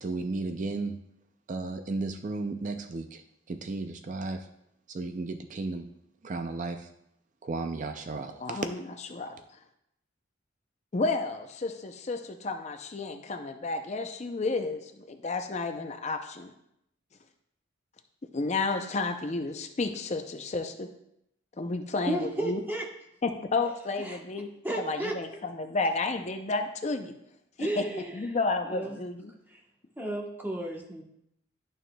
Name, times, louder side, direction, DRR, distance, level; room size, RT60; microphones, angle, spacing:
voice 1, 0.0-1.0 1.5-4.5 4.9-5.9 6.2-6.9 7.4-8.6, right 3 dB, 40° right, 7 dB, 0.4 m, -34 dB
voice 2, 8.4-8.8 9.1-9.3 10.9-16.5 18.3-20.9 21.6-22.6 23.2-24.5 24.8-27.1 27.8-27.9 28.1-29.3, left 3 dB, 35° left, 6 dB, 0.5 m, -31 dB
voice 3, 22.1-22.9 24.0-24.2 24.6-25.4 27.6-28.4 28.6-29.0 29.5-29.6 30.0-31.0, right 1 dB, 10° right, 0 dB, 1.0 m, -33 dB
11.0 x 6.3 x 2.2 m, 0.78 s
head